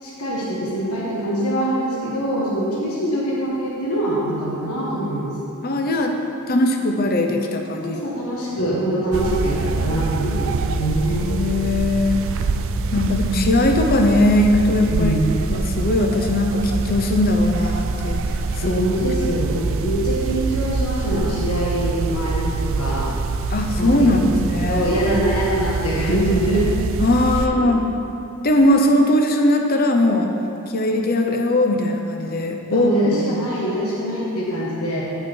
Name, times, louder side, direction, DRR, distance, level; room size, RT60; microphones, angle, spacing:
voice 1, 0.0-5.4 7.8-11.3 14.9-15.3 18.6-23.1 23.8-24.1 24.7-26.7 32.7-35.0, right 1 dB, 75° left, -5 dB, 1.4 m, -23 dB
voice 2, 5.6-6.2 6.5-8.0 8.5-8.7 11.1-12.2 12.9-15.1 15.5-18.2 18.6-18.8 19.3-19.4 23.5-24.9 27.0-27.8 28.4-30.3 30.7-32.9 33.3-33.4, left 1 dB, 45° left, 3 dB, 0.7 m, -19 dB
sound 1, 9.1-27.5, right 4 dB, 60° right, 0.4 m, -25 dB
9.4 x 5.9 x 4.4 m, 2.7 s
head